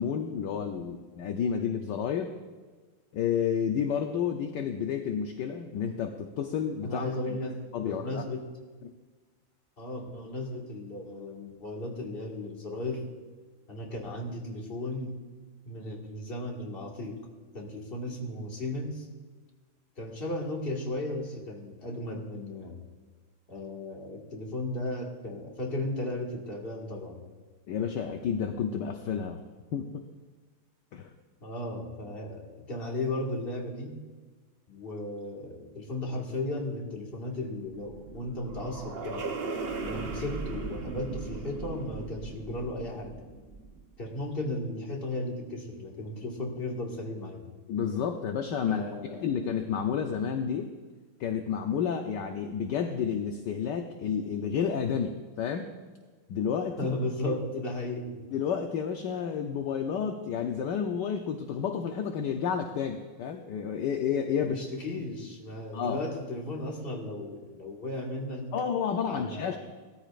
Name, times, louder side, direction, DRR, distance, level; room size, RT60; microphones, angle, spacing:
voice 1, 0.0-2.3 3.1-7.4 7.7-8.2 8.8-8.9 27.7-29.4 29.7-30.0 30.9-31.1 47.7-48.8 49.2-50.7 51.2-55.7 56.3-56.8 57.3-57.6 58.3-64.6 65.7-66.0 68.5-69.6, left 7 dB, 65° left, 4 dB, 1.2 m, -30 dB
voice 2, 6.8-8.5 9.8-13.1 13.7-15.2 15.7-17.3 17.5-19.1 20.0-22.8 23.5-27.2 31.4-34.0 34.7-39.3 39.8-43.2 44.0-47.5 48.7-49.4 56.8-58.2 64.5-68.5 69.0-69.6, left 1 dB, 25° left, -1 dB, 1.9 m, -35 dB
sound 1, 37.5-43.9, right 4 dB, 85° right, 0.5 m, -38 dB
18.5 x 13.5 x 2.5 m, 1.4 s
omnidirectional pair, 2.4 m